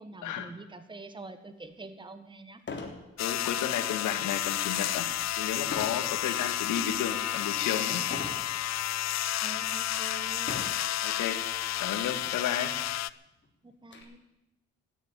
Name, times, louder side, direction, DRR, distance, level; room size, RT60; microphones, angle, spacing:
voice 1, 0.0-2.6 9.4-10.5 13.6-14.2, right 3 dB, 15° right, 9 dB, 1.5 m, -45 dB
sound 1, 1.7-1.8 2.6-3.0 3.5-3.8 5.7-6.1 6.7-7.1 8.1-8.5 9.2-9.3 10.4-10.9 11.9-12.0 12.4-12.5 12.9-14.0, left 4 dB, 35° left, 3.7 m, -39 dB
voice 2, 3.2-5.1 5.4-8.0 11.0-11.4 11.8-12.7, left 9 dB, 80° left, 8 dB, 1.9 m, -32 dB
sound 2, 3.2-13.1, left 13 dB, 60° left, 0.6 m, -31 dB
13.5 x 10.0 x 9.9 m, 0.91 s
cardioid pair, 90°, 30 cm